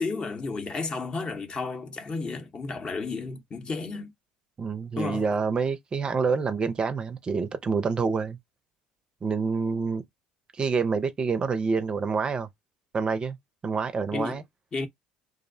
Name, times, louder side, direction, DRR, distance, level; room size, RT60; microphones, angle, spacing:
voice 1, 0.0-4.1 4.9-5.3 14.1-14.4 14.7-14.9, left 4 dB, 30° left, 0.7 m, -32 dB
voice 2, 4.6-8.4 9.2-10.0 10.6-12.5 12.9-13.4 13.6-14.4, right 5 dB, 30° right, 0.5 m, -27 dB
2.5 x 2.0 x 2.5 m
hypercardioid pair, 65°, 3 cm